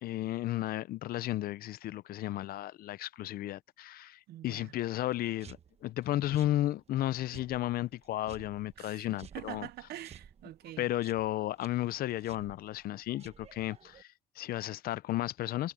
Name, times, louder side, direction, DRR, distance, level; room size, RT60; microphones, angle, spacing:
voice 1, 0.0-9.7 10.8-15.7, left 14 dB, 60° left, 0.6 m, -34 dB
voice 2, 4.3-4.7 8.8-10.9, right 15 dB, 70° right, 0.8 m, -45 dB
sound 1, 5.1-14.0, right 7 dB, 40° right, 1.1 m, -56 dB
cardioid pair, 110°, 17 cm